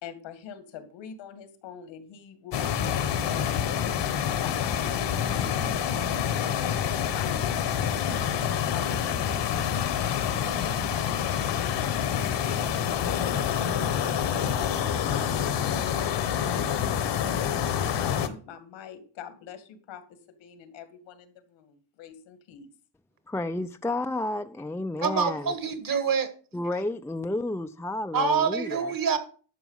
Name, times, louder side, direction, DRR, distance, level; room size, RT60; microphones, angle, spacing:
voice 1, 0.0-3.7 4.2-9.8 10.2-17.6 18.0-22.7, left 8 dB, 85° left, 2.2 m, -45 dB
sound 1, 2.5-18.3, left 8 dB, 70° left, 1.4 m, -27 dB
voice 2, 23.3-25.5 26.5-28.9, left 2 dB, 5° left, 0.4 m, -31 dB
voice 3, 25.0-26.3 28.1-29.2, right 6 dB, 50° right, 1.8 m, -26 dB
11.5 x 6.0 x 5.6 m
cardioid pair, 100°, 44 cm